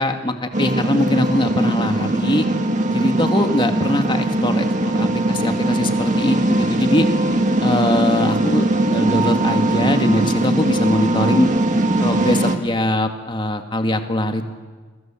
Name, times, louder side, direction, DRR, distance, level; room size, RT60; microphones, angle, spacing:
voice 1, 0.0-2.5 2.9-7.1 7.6-11.5 12.0-14.5, left 1 dB, 25° left, 6 dB, 2.1 m, -22 dB
sound 1, 0.5-12.6, right 1 dB, 40° right, 2.0 m, -20 dB
30.0 x 21.5 x 7.7 m, 1.4 s
head